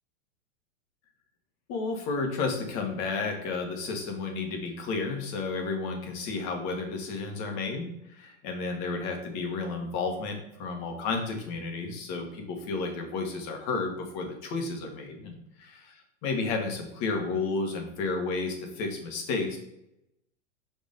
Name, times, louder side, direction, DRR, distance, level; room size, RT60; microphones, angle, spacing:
voice 1, 1.7-15.9 16.2-19.6, left 4 dB, 45° left, 3 dB, 1.8 m, -32 dB
5.2 x 4.8 x 5.3 m, 0.83 s
hypercardioid pair, 125°, 38 cm